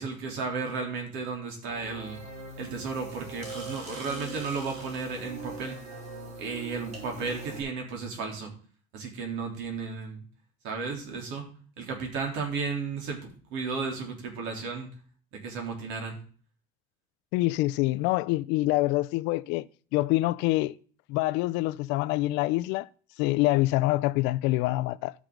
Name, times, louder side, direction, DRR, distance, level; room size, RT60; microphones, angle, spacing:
voice 1, 0.0-2.2 2.6-5.8 6.4-8.5 8.9-10.3 10.6-11.5 11.8-14.9 15.3-16.2, right 4 dB, 65° right, 3.5 m, -34 dB
sound 1, 1.7-7.6, right 2 dB, 35° right, 4.7 m, -41 dB
voice 2, 17.3-19.7 19.9-20.8 21.1-22.9 23.2-25.1, left 18 dB, 65° left, 0.5 m, -25 dB
13.0 x 6.2 x 3.9 m
cardioid pair, 160°, 20 cm